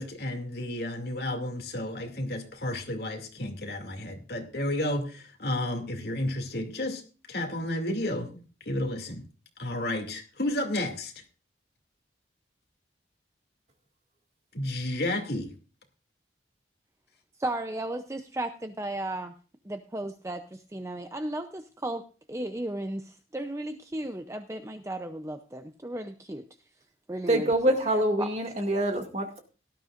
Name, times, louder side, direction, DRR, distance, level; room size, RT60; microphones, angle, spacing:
voice 1, 0.0-7.0 7.3-8.3 8.7-9.2 9.6-11.1 14.5-15.5, left 1 dB, 60° left, 2.5 m, -31 dB
voice 2, 17.4-19.3 19.6-26.4 27.1-27.7 28.2-28.3, right 1 dB, 15° right, 0.5 m, -35 dB
voice 3, 27.3-29.4, right 1 dB, 35° right, 2.2 m, -25 dB
18.0 x 12.5 x 2.5 m
head